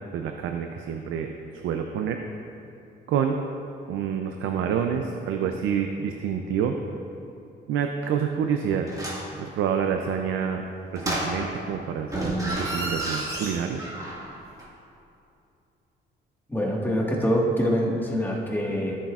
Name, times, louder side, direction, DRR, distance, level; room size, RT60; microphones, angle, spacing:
voice 1, 0.1-1.3 1.6-2.2 3.1-3.4 3.9-6.8 7.7-8.9 9.4-10.6 10.9-13.8, right 7 dB, 85° right, 4 dB, 0.5 m, -27 dB
sound 1, 8.9-9.4 11.0-11.7 12.1-14.3 14.6-14.7, right 1 dB, 15° right, 1.8 m, -31 dB
voice 2, 16.5-18.9, equal, 10° left, -2 dB, 1.6 m, -25 dB
13.5 x 7.5 x 2.4 m, 2.7 s
cardioid pair, 90°, 20 cm